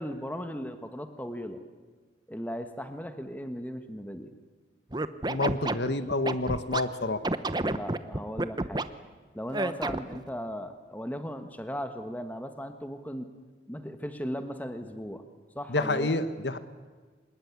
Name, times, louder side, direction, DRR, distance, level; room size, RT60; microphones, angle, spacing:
voice 1, 0.0-1.6 2.3-4.3 7.6-8.8 9.3-13.3 13.7-15.2 15.5-16.1, equal, 10° left, 8 dB, 1.5 m, -37 dB
Scratching (performance technique), 4.9-6.8 7.2-8.8 9.5-10.2, right 2 dB, 25° right, 0.8 m, -29 dB
voice 2, 5.3-7.2 15.7-16.6, left 2 dB, 80° left, 11 dB, 1.4 m, -28 dB
25.0 x 20.5 x 9.6 m, 1.4 s
head